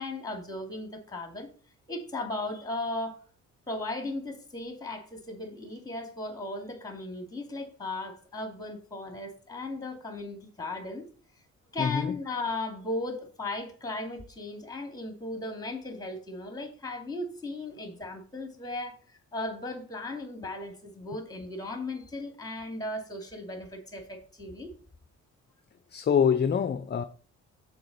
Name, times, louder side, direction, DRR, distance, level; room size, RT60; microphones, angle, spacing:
voice 1, 0.0-1.5 1.9-3.2 3.7-11.1 11.7-24.7, left 2 dB, 10° left, 2.6 m, -36 dB
voice 2, 11.8-12.1 25.9-27.0, left 7 dB, 35° left, 0.6 m, -25 dB
6.8 x 4.9 x 6.7 m
cardioid pair, 90°, 30 cm